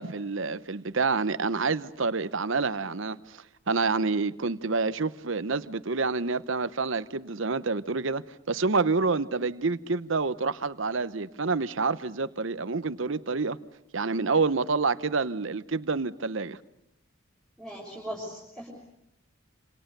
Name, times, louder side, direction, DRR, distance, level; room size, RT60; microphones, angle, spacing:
voice 1, 0.0-3.4 3.7-13.6 13.9-16.6, right 4 dB, 65° right, 0.9 m, -28 dB
voice 2, 17.6-18.7, equal, 5° left, 6.4 m, -39 dB
28.0 x 27.5 x 6.8 m
head